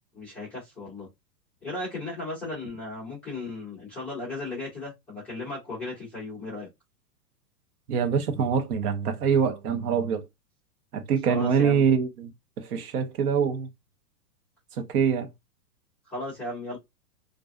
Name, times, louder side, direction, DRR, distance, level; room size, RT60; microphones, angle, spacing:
voice 1, 0.1-1.1 1.6-6.7 11.3-11.8 16.1-16.8, left 2 dB, 5° left, 0.3 m, -36 dB
voice 2, 7.9-10.3 10.9-12.3 12.6-13.7 14.7-15.3, right 7 dB, 65° right, 0.9 m, -24 dB
2.5 x 2.2 x 2.4 m
hypercardioid pair, 130°, 48 cm